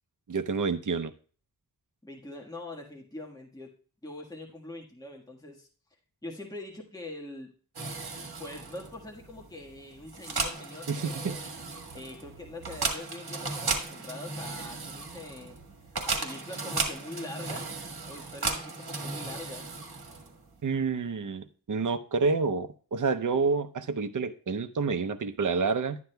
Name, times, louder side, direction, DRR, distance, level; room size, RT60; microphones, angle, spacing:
voice 1, 0.3-1.1 10.9-11.4 20.6-26.0, right 4 dB, 55° right, 9 dB, 0.7 m, -28 dB
voice 2, 2.0-3.7 4.0-5.7 6.2-7.5 8.4-11.4 11.9-15.6 16.0-17.7 18.1-19.7, left 2 dB, 10° left, -1 dB, 1.5 m, -43 dB
sound 1, 7.8-20.5, right 3 dB, 75° right, 1.6 m, -36 dB
11.5 x 9.6 x 2.2 m, 0.41 s
wide cardioid pair, 85°, 38 cm